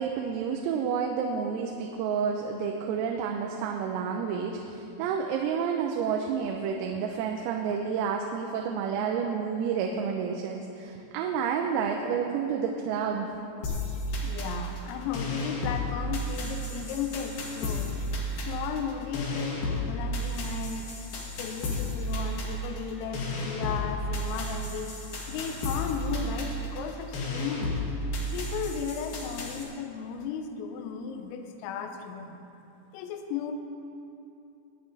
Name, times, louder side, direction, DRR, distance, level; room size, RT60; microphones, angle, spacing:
voice 1, 0.0-13.3, right 6 dB, 85° right, 2 dB, 3.5 m, -30 dB
sound 1, 13.6-29.6, left 1 dB, 55° left, 3.2 m, -33 dB
voice 2, 14.2-17.9 18.4-20.9 21.4-25.0 25.3-27.7 28.3-32.4 32.9-33.5, left 6 dB, 85° left, 5 dB, 3.5 m, -35 dB
23.0 x 8.9 x 4.1 m, 2.8 s
omnidirectional pair, 6.0 m